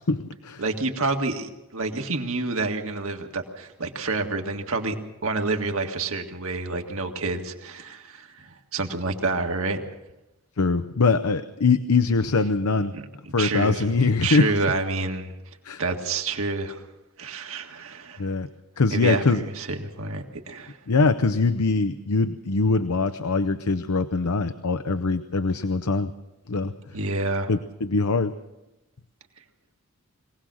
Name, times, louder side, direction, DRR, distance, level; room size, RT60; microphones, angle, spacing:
voice 1, 0.1-0.6 10.6-12.9 13.3-14.5 15.6-15.8 18.2-18.5 18.8-19.4 20.9-26.1 26.5-26.7 27.5-28.3, left 3 dB, 80° left, 11 dB, 0.7 m, -22 dB
voice 2, 0.6-9.8 12.9-13.0 13.4-13.9 14.2-15.3 15.8-16.9 17.2-18.3 18.9-20.8 26.9-27.5, right 3 dB, 65° right, 4 dB, 1.8 m, -28 dB
23.0 x 18.0 x 6.3 m, 0.99 s
head